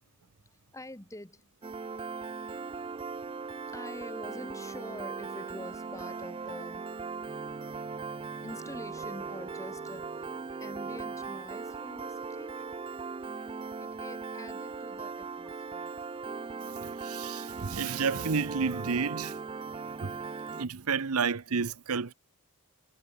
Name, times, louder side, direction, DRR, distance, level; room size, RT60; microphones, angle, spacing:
voice 1, 0.4-1.5 2.5-6.8 8.4-10.3 10.6-12.6 13.8-15.9, left 1 dB, 15° left, 1.7 m, -46 dB
Piano, 1.6-20.7, right 4 dB, 25° right, 0.3 m, -39 dB
voice 2, 16.8-19.4 20.0-20.2 20.6-22.1, right 5 dB, 90° right, 0.8 m, -31 dB
head